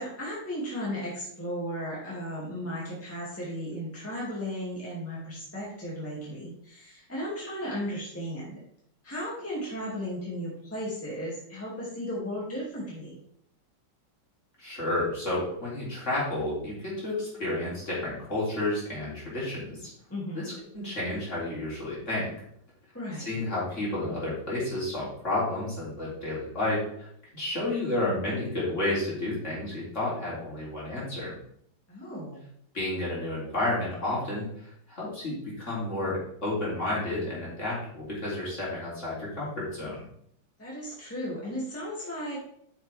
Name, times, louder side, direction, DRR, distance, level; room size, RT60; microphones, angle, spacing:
voice 1, 0.0-8.6 9.0-13.2 20.1-20.4 22.9-23.3 31.9-32.4 40.6-42.4, equal, 5° left, -6 dB, 2.4 m, -35 dB
voice 2, 14.6-19.9 20.3-22.3 23.2-27.1 27.3-31.3 32.7-40.1, left 2 dB, 35° left, -7 dB, 3.7 m, -31 dB
8.9 x 6.5 x 3.5 m, 0.69 s
omnidirectional pair, 2.1 m